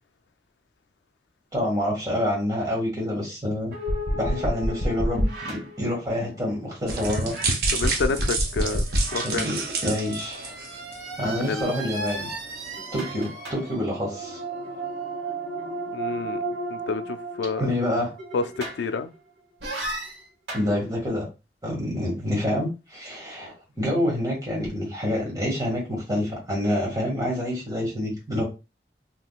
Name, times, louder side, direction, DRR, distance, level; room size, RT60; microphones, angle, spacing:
voice 1, 1.5-3.7 4.2-7.3 9.1-10.6 11.2-12.3 12.9-14.4 17.6-18.1 20.5-21.3 21.6-28.4, left 1 dB, 20° right, 1.7 m, -27 dB
sound 1, 3.7-6.4 6.9-19.2 19.6-20.7, right 1 dB, 75° right, 1.2 m, -31 dB
sound 2, 6.9-11.1 11.5-11.6 12.1-12.2, right 3 dB, 55° right, 0.7 m, -29 dB
voice 2, 7.7-8.9 9.1-9.5 11.4-11.7 15.9-16.4 16.7-17.7 18.3-19.1, left 4 dB, 80° left, 0.3 m, -29 dB
3.6 x 2.8 x 2.3 m
head